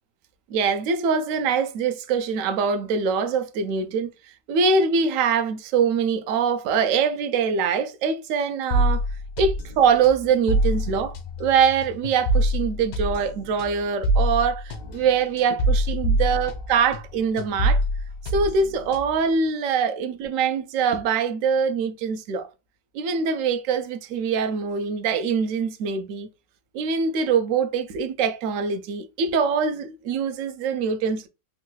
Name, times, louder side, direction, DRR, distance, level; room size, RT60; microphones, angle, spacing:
voice 1, 0.5-4.1 4.5-9.0 9.4-17.8 18.3-22.5 22.9-26.3 26.7-31.3, right 6 dB, 80° right, 0.7 m, -23 dB
sound 1, 8.7-17.1 17.4-19.3, right 1 dB, 70° left, 0.9 m, -25 dB
3.7 x 2.2 x 2.8 m
omnidirectional pair, 1.9 m